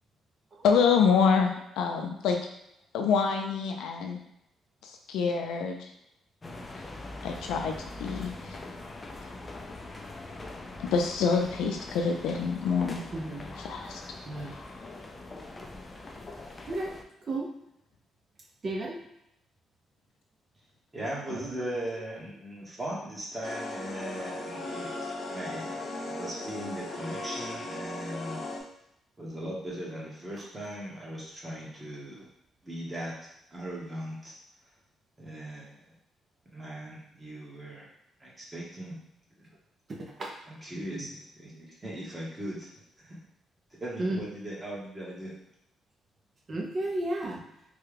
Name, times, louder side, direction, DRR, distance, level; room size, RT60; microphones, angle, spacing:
voice 1, 0.6-2.4 2.9-4.2 4.8-5.8 7.2-7.7 8.0-8.6 10.8-13.0 13.6-13.9, left 6 dB, 85° left, 3 dB, 0.4 m, -26 dB
sound 1, 6.4-17.0, left 2 dB, 25° left, 0.4 m, -42 dB
voice 2, 13.1-13.5 14.3-14.5 16.7-16.9 17.3-17.5 18.6-19.0 21.3-21.5 40.2-40.3 40.8-41.1 44.0-44.2 46.5-47.4, right 2 dB, 40° right, 0 dB, 0.6 m, -32 dB
voice 3, 20.9-24.9 25.3-28.4 29.2-32.3 32.6-33.1 33.5-34.3 35.2-35.8 36.5-37.9 38.2-39.0 39.4-39.5 40.5-42.7 43.0-43.2 43.8-45.3, right 1 dB, 20° right, -5 dB, 1.2 m, -39 dB
sound 2, 23.4-28.6, left 2 dB, 50° left, 0.7 m, -37 dB
3.3 x 2.3 x 3.3 m, 0.80 s
cardioid pair, 90°, 0 cm